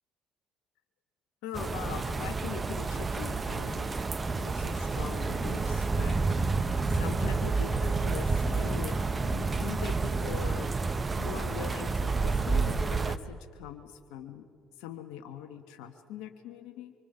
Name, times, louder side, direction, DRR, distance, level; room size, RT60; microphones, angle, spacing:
voice 1, 1.4-4.0 4.4-6.2 6.9-10.7 11.2-14.4 14.8-16.9, left 9 dB, 75° left, 6 dB, 1.2 m, -42 dB
sound 1, 1.5-13.2, right 4 dB, 30° right, 0.9 m, -29 dB
25.0 x 24.5 x 5.5 m, 2.3 s
hypercardioid pair, 55°, 0 cm